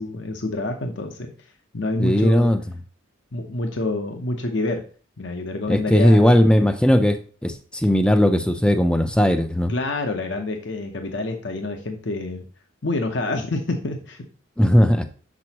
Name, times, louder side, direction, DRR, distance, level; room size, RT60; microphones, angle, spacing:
voice 1, 0.0-1.3 1.7-2.5 3.3-4.8 5.2-6.3 9.7-12.5 12.8-14.2, left 2 dB, 65° left, 5 dB, 0.8 m, -27 dB
voice 2, 2.0-2.6 5.7-7.2 7.4-9.7 14.6-15.1, equal, 5° left, 9 dB, 0.5 m, -17 dB
6.9 x 6.2 x 2.9 m, 0.39 s
head